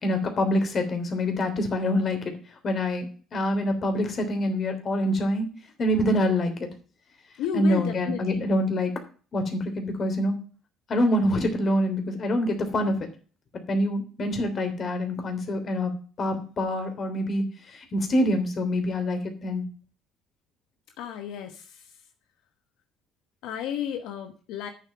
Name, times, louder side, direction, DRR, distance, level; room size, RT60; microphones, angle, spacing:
voice 1, 0.0-2.3 2.6-3.1 3.3-5.5 5.8-6.7 7.5-8.9 9.3-10.4 10.9-13.1 13.7-15.9 16.2-19.6, left 1 dB, 40° left, 6 dB, 3.1 m, -25 dB
voice 2, 7.4-8.4 21.0-21.8 23.4-24.7, left 9 dB, 85° left, 5 dB, 1.1 m, -32 dB
8.9 x 7.5 x 5.7 m, 0.39 s
cardioid pair, 105°, 0 cm